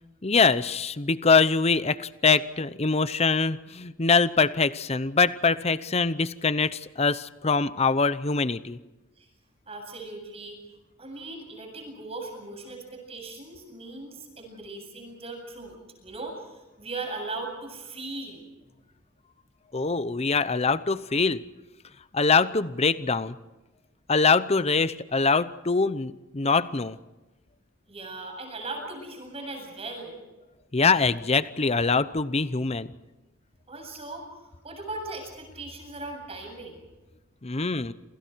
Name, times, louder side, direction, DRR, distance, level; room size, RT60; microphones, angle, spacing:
voice 1, 0.2-8.8 19.7-21.4 22.1-23.4 24.1-27.0 30.7-32.9 37.4-37.9, left 4 dB, 30° left, 15 dB, 0.8 m, -23 dB
voice 2, 9.7-10.6 11.0-15.8 16.0-18.5 27.9-30.2 33.7-36.8, right 2 dB, 30° right, 3 dB, 7.9 m, -38 dB
28.0 x 27.5 x 4.7 m, 1.1 s
head